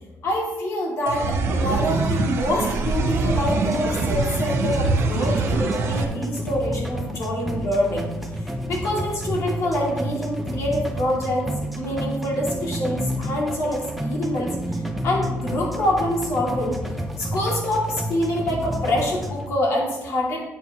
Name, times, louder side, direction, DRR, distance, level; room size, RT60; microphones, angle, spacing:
voice 1, 0.2-8.0 8.4-11.5 11.8-14.6 15.0-16.8 17.2-20.4, left 1 dB, 70° left, -3 dB, 2.3 m, -25 dB
sound 1, 1.1-6.1, right 3 dB, 60° right, 0.8 m, -24 dB
sound 2, 3.5-19.5, equal, ahead, 0.7 m, -30 dB
8.0 x 7.2 x 2.9 m, 1.1 s
cardioid pair, 160°, 5 cm